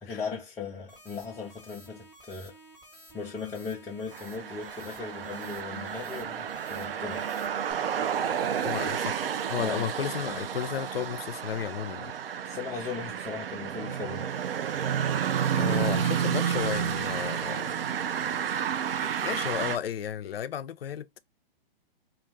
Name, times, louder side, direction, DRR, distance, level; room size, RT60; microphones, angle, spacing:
voice 1, 0.0-2.5 3.1-7.2 8.9-9.0 9.6-9.9 12.4-14.3, left 5 dB, 10° left, 0.4 m, -38 dB
sound 1, 0.9-7.7, right 1 dB, 10° right, 1.1 m, -53 dB
sound 2, 4.1-19.8, right 8 dB, 75° right, 0.5 m, -31 dB
voice 2, 8.6-9.2 9.5-12.1 15.6-17.8 19.2-21.2, left 9 dB, 80° left, 0.5 m, -33 dB
2.4 x 2.4 x 3.2 m
hypercardioid pair, 130°, 29 cm